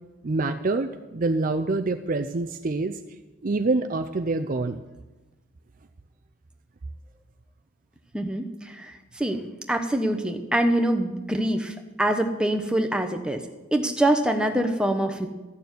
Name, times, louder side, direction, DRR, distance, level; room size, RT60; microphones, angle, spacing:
voice 1, 0.2-3.0 3.4-4.8, right 3 dB, 40° right, 7 dB, 0.5 m, -26 dB
voice 2, 8.1-9.4 9.7-13.4 13.7-15.3, right 1 dB, 5° right, 4 dB, 0.9 m, -25 dB
13.5 x 6.9 x 9.4 m, 1.2 s
head